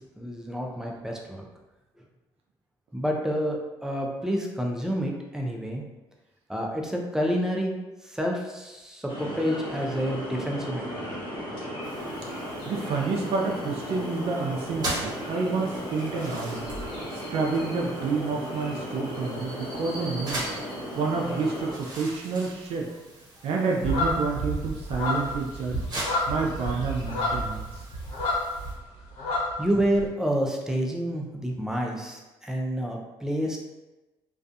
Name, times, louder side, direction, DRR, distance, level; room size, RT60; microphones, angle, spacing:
voice 1, 0.0-1.5 2.9-5.8 6.5-7.7 8.0-11.2 29.6-33.6, equal, 5° right, 0 dB, 0.5 m, -29 dB
sound 1, 9.1-21.7, equal, 55° left, 1.1 m, -35 dB
sound 2, 11.8-28.7, right 1 dB, 40° right, 1.0 m, -41 dB
voice 2, 12.7-16.7 17.1-20.4 21.0-22.9 23.4-25.8 26.3-27.8, right 4 dB, 65° right, 0 dB, 0.4 m, -29 dB
sound 3, 23.8-28.8 29.0-30.0, left 1 dB, 80° left, 0.8 m, -29 dB
2.4 x 2.3 x 2.6 m, 1.1 s
supercardioid pair, 75°, 11 cm